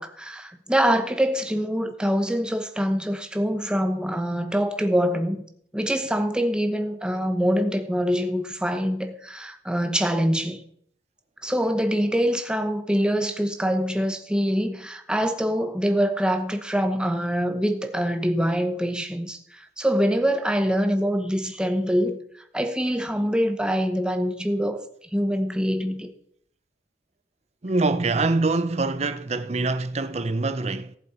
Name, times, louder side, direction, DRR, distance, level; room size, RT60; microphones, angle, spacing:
voice 1, 0.0-5.4 5.7-10.6 11.4-22.2 22.5-24.8 25.1-26.1, equal, 5° right, 1.0 m, -24 dB
voice 2, 27.6-31.0, right 3 dB, 40° right, 0.7 m, -24 dB
17.5 x 7.6 x 4.3 m
head